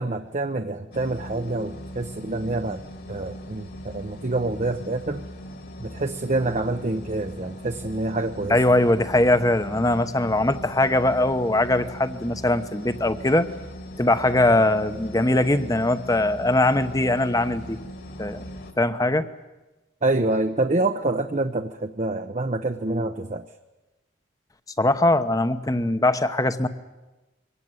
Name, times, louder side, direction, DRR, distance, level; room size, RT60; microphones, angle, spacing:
voice 1, 0.0-2.8 3.1-5.2 5.8-8.6 20.0-23.5, right 2 dB, 40° right, 7 dB, 0.8 m, -26 dB
sound 1, 0.9-18.7, equal, 55° left, 2.5 m, -40 dB
voice 2, 8.5-13.5 14.0-17.8 18.2-18.4 18.8-19.2 24.8-26.7, left 1 dB, 20° left, 11 dB, 0.9 m, -21 dB
23.5 x 18.0 x 9.6 m, 1.1 s
head